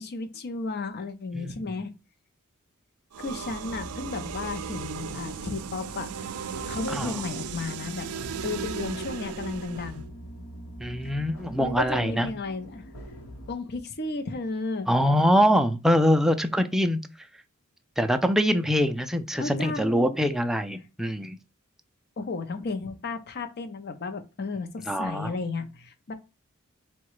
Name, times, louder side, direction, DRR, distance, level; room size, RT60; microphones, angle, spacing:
voice 1, 0.0-1.9 3.2-6.3 6.6-8.1 8.4-10.0 11.0-11.3 11.6-12.8 13.5-14.9 19.3-20.2 22.2-26.1, left 3 dB, 50° left, 0.6 m, -33 dB
sound 1, 3.1-10.0, right 7 dB, 85° right, 0.4 m, -36 dB
sound 2, 3.6-13.6, equal, 75° left, 1.0 m, -44 dB
voice 2, 10.8-12.3 14.9-17.0 18.0-21.4 24.9-25.3, equal, ahead, 0.3 m, -24 dB
4.0 x 2.2 x 4.6 m
head